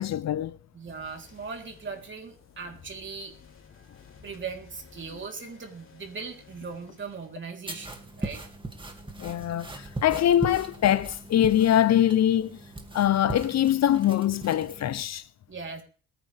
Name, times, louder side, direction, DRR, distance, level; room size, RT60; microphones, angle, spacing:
voice 1, 0.0-0.6 9.2-12.6 12.9-15.2, left 11 dB, 60° left, 0.7 m, -23 dB
voice 2, 0.7-3.3 4.2-8.4 15.5-15.8, right 5 dB, 40° right, 3.6 m, -39 dB
sound 1, 0.8-7.7, left 5 dB, 45° left, 3.7 m, -54 dB
sound 2, 7.7-15.0, right 2 dB, 15° right, 2.4 m, -39 dB
22.5 x 9.6 x 3.5 m
cardioid pair, 90°, 30 cm